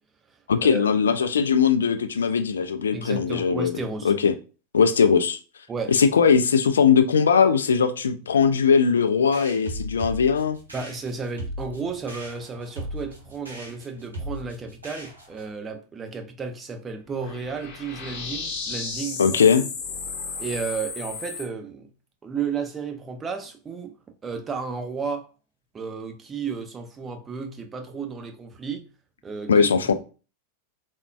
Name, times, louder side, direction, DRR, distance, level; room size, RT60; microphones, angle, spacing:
voice 1, 0.5-3.8 4.0-4.3 4.7-5.4 5.9-10.6 19.2-19.7 29.5-29.9, left 6 dB, 70° left, 0.3 m, -20 dB
voice 2, 2.9-4.1 5.7-6.0 10.7-19.2 20.4-21.9 22.2-23.9 24.2-25.3 25.7-28.8 29.2-29.7, right 5 dB, 20° right, 0.5 m, -33 dB
sound 1, 9.3-15.5, equal, 80° right, 0.9 m, -37 dB
sound 2, 17.1-21.4, left 4 dB, 45° left, 0.7 m, -34 dB
3.5 x 2.2 x 2.3 m
figure-of-eight pair, 90°, 0 cm